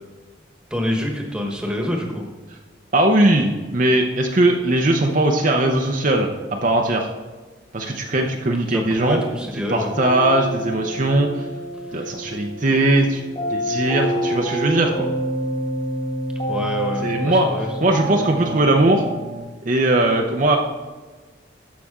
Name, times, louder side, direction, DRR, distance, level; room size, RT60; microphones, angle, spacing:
voice 1, 0.7-2.3 8.7-9.9 11.9-12.1 16.5-17.7, equal, 5° right, 1 dB, 1.2 m, -26 dB
voice 2, 2.9-7.1 7.7-9.2 9.7-11.4 11.9-13.2 13.5-15.1 17.0-17.5 17.8-19.0 19.7-20.6, right 1 dB, 40° right, 2 dB, 0.7 m, -19 dB
sound 1, 9.9-19.4, right 1 dB, 35° left, 2.0 m, -27 dB
13.5 x 5.8 x 3.7 m, 1.3 s
head